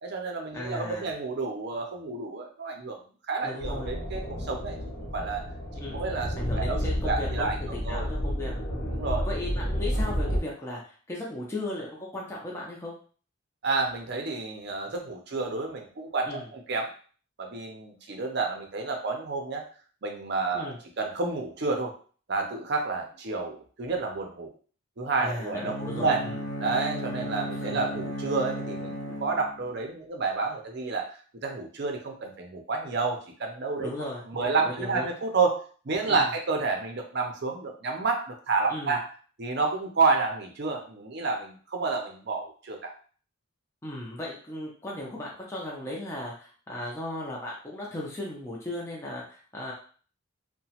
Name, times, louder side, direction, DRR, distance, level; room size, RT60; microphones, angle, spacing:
voice 1, 0.0-3.0 3.3-5.4 5.8-6.8 7.0-8.1 8.9-9.3 13.6-16.9 17.4-19.6 20.0-21.9 22.3-24.5 25.0-26.2 26.6-31.1 31.4-33.9 34.3-39.1 39.4-42.9, right 4 dB, 50° right, 2 dB, 0.6 m, -30 dB
voice 2, 0.5-1.1 3.4-3.9 5.7-6.0 6.4-8.5 9.2-12.9 16.3-16.5 20.5-20.8 25.2-26.4 27.6-27.8 33.8-35.1 36.1-36.3 38.7-39.0 43.8-49.7, left 1 dB, 15° left, -4 dB, 0.5 m, -36 dB
sound 1, 3.6-10.4, equal, 55° left, 0.8 m, -31 dB
Bowed string instrument, 25.6-29.8, equal, 85° left, 0.5 m, -35 dB
2.9 x 2.1 x 2.8 m, 0.42 s
head